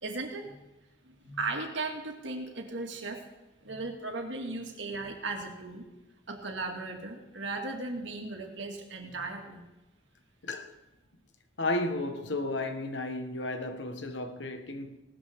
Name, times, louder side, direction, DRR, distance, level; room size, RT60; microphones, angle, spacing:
voice 1, 0.0-0.6 1.1-3.2 3.6-5.8 6.3-9.6, right 3 dB, 75° right, 2.2 m, -36 dB
voice 2, 11.6-14.9, left 2 dB, 70° left, 1.4 m, -33 dB
18.0 x 13.0 x 3.7 m
head